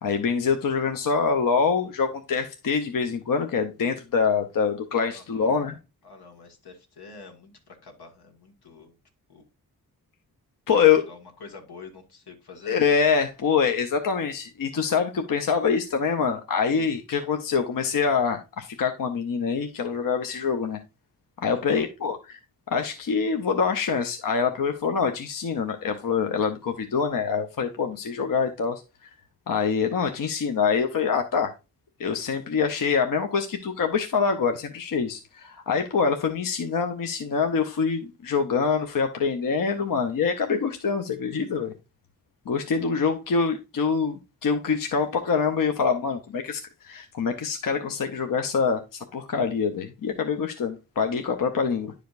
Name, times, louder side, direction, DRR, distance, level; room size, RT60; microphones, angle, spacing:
voice 1, 0.0-5.8 10.7-11.0 12.7-20.8 21.4-22.4 22.7-28.8 29.5-31.5 32.0-41.7 42.5-51.9, left 6 dB, 60° left, 0.7 m, -25 dB
voice 2, 5.1-5.5 6.0-8.9 9.3-9.4 10.7-12.8 21.5-21.9, left 4 dB, 85° left, 1.7 m, -46 dB
10.5 x 4.9 x 2.5 m
wide cardioid pair, 130°, 38 cm